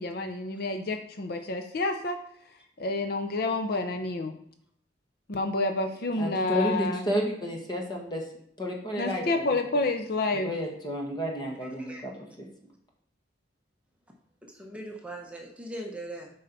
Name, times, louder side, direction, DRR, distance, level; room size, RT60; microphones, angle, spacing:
voice 1, 0.0-2.2 2.8-4.3 5.3-7.0 9.0-10.5, left 2 dB, 55° left, 5 dB, 0.6 m, -29 dB
voice 2, 6.1-8.2 8.6-9.6 10.3-12.1 12.4-12.5, equal, 25° left, -1 dB, 1.4 m, -31 dB
voice 3, 11.6-12.0 14.5-16.3, right 1 dB, 5° right, 0 dB, 1.0 m, -40 dB
7.4 x 5.5 x 4.1 m, 0.68 s
head